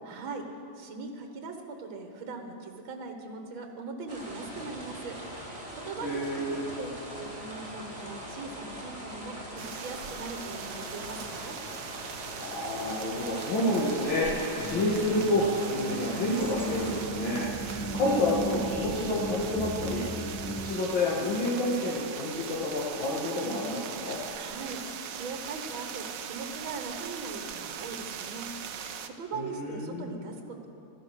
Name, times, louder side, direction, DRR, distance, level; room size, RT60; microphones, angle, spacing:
voice 1, 0.0-0.5 0.8-5.2 5.7-6.9 7.2-11.6 24.3-28.5 29.0-30.7, right 4 dB, 80° right, 5 dB, 2.0 m, -40 dB
sound 1, 4.1-17.0, equal, 15° right, 2.6 m, -42 dB
voice 2, 6.0-6.6 12.4-20.0 20.6-24.2 29.3-30.1, left 1 dB, 75° left, -6 dB, 2.5 m, -29 dB
sound 2, 9.6-29.1, right 8 dB, 60° right, 0.9 m, -40 dB
sound 3, 14.6-20.7, right 2 dB, 20° left, 0.4 m, -36 dB
15.0 x 12.5 x 6.4 m, 2.8 s
omnidirectional pair, 2.2 m